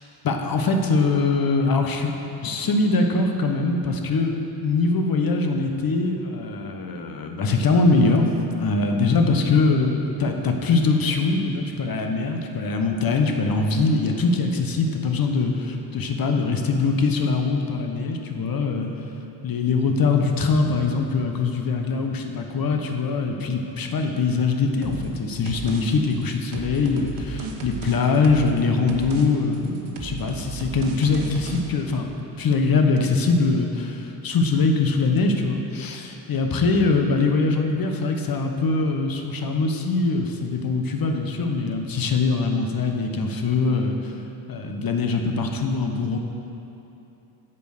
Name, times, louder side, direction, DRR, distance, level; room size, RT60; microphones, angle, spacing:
voice 1, 0.2-2.1 2.4-4.3 4.6-8.3 8.6-18.9 19.4-44.1 44.5-46.2, left 3 dB, 45° left, 4 dB, 1.0 m, -22 dB
sound 1, 24.8-25.2 25.5-25.8 26.1-28.6 28.9-29.3 29.5-31.6, right 4 dB, 75° right, 1.1 m, -34 dB
7.0 x 5.1 x 6.5 m, 2.9 s
supercardioid pair, 55°, 47 cm